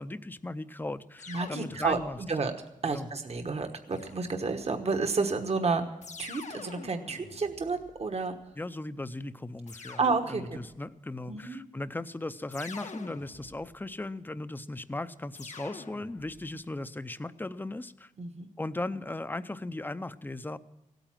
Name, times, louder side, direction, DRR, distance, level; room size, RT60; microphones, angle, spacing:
voice 1, 0.0-2.2 2.9-3.1 8.6-10.0 10.3-18.1 18.6-20.6, left 2 dB, 15° left, 13 dB, 0.6 m, -37 dB
sound 1, 1.2-2.4 3.9-4.8 6.0-8.3 9.7-10.8 12.5-13.9 15.3-16.6, left 4 dB, 60° left, 1.1 m, -47 dB
voice 2, 1.3-2.0 2.3-2.5 2.8-5.8 6.2-8.3 10.0-10.6 11.3-11.6 18.2-18.5, right 4 dB, 50° right, 6 dB, 1.2 m, -30 dB
16.5 x 9.1 x 7.4 m, 0.94 s
wide cardioid pair, 85°, 13 cm